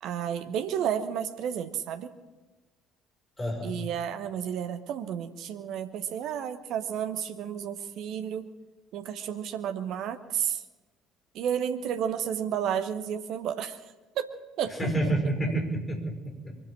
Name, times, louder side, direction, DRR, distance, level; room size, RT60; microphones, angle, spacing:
voice 1, 0.0-2.1 3.6-8.4 8.9-10.6 11.3-13.8 14.1-14.3 14.6-14.7, right 9 dB, 55° right, 9 dB, 1.0 m, -31 dB
voice 2, 3.4-3.8 14.8-16.6, right 1 dB, 15° left, 1 dB, 5.9 m, -29 dB
23.5 x 8.0 x 7.5 m, 1.2 s
figure-of-eight pair, 50°, 0 cm